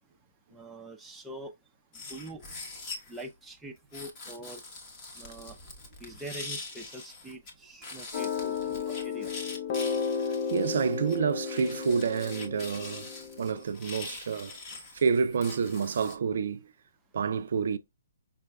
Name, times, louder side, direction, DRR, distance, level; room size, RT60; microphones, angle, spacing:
voice 1, 0.5-1.5 1.9-2.4 3.1-4.6 5.2-5.6 6.0-9.3, right 1 dB, 5° right, 0.5 m, -44 dB
sound 1, 1.9-3.3 3.9-7.5 7.8-16.2, left 3 dB, 25° left, 1.0 m, -44 dB
sound 2, 8.1-13.6, left 6 dB, 40° left, 0.6 m, -33 dB
voice 2, 10.2-13.1 13.4-14.6 14.9-16.7 17.1-17.8, right 6 dB, 65° right, 0.4 m, -28 dB
5.3 x 2.2 x 2.3 m
hypercardioid pair, 150°, 0 cm